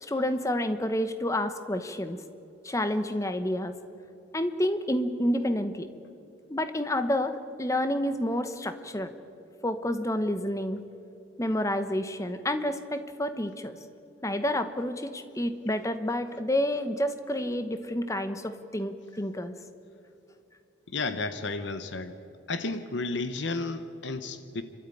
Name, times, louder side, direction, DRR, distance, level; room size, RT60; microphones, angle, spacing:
voice 1, 0.0-2.2 2.6-3.8 4.3-5.9 6.5-9.1 9.6-10.8 11.4-13.8 14.2-19.5, left 1 dB, 15° left, 9 dB, 1.0 m, -29 dB
voice 2, 20.9-22.2 22.5-24.6, left 3 dB, 65° left, 11 dB, 0.9 m, -32 dB
28.0 x 13.0 x 9.2 m, 2.7 s
head